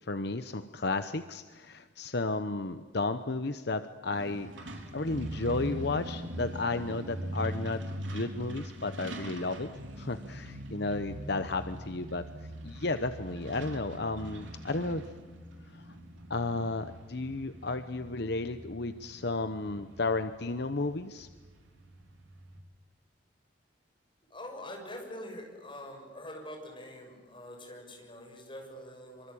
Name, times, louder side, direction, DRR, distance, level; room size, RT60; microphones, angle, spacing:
voice 1, 0.0-7.8 8.1-9.7 10.0-12.2 12.6-15.0 15.7-15.9 16.3-21.3, left 3 dB, 60° left, 10 dB, 0.9 m, -33 dB
Truck, 4.1-22.6, right 1 dB, 80° right, 3.8 m, -42 dB
voice 2, 24.3-29.3, left 1 dB, 25° left, 2 dB, 6.7 m, -44 dB
25.0 x 25.0 x 8.6 m, 1.4 s
head